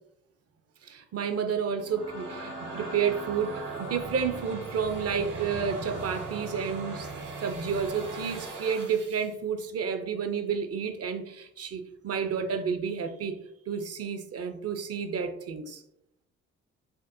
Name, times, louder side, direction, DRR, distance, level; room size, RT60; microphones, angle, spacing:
voice 1, 0.8-7.1 7.4-13.4 13.7-15.8, right 6 dB, 45° right, 0.6 m, -31 dB
sound 1, 1.6-9.3, right 3 dB, 70° right, 1.3 m, -39 dB
6.2 x 2.1 x 2.6 m
hypercardioid pair, 50°, 33 cm